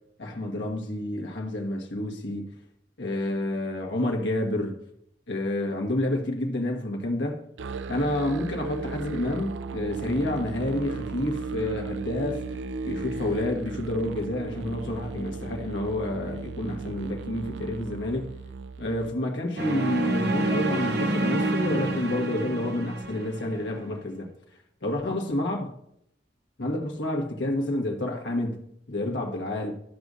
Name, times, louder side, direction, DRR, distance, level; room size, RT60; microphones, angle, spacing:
voice 1, 0.2-2.5 3.0-4.8 5.3-7.4 7.9-12.4 12.8-18.4 18.8-24.3 24.8-25.7 26.6-29.7, left 1 dB, 85° left, 1.5 m, -29 dB
Musical instrument, 7.6-19.2, right 4 dB, 85° right, 0.4 m, -36 dB
sound 1, 19.6-23.7, right 2 dB, 65° right, 0.8 m, -28 dB
12.5 x 6.2 x 2.7 m
head